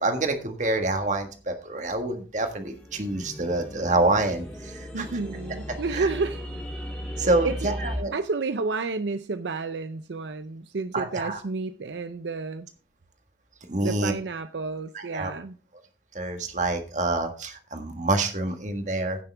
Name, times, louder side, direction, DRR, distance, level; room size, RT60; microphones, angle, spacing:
voice 1, 0.0-5.1 5.9-6.1 7.2-8.1 10.9-11.4 13.7-14.1 14.9-15.3 16.1-19.2, right 2 dB, 40° right, 1.6 m, -27 dB
sound 1, 2.7-8.0, equal, 5° left, 2.5 m, -36 dB
voice 2, 4.9-6.4 7.2-7.7 8.1-12.7 13.8-15.6, right 4 dB, 80° right, 0.6 m, -31 dB
16.0 x 6.8 x 3.4 m
head